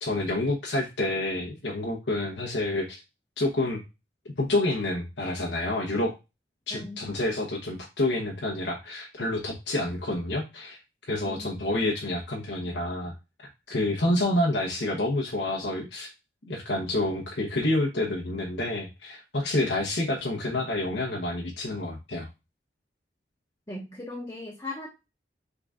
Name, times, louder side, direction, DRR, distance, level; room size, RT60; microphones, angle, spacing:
voice 1, 0.0-3.0 3.4-3.8 4.4-6.1 6.7-10.8 11.1-13.1 13.7-16.1 16.5-22.3, left 1 dB, 80° left, -1 dB, 1.0 m, -28 dB
voice 2, 6.7-7.1 11.3-11.5 23.7-24.9, left 2 dB, 20° left, -2 dB, 0.7 m, -38 dB
3.8 x 3.7 x 3.6 m, 0.26 s
head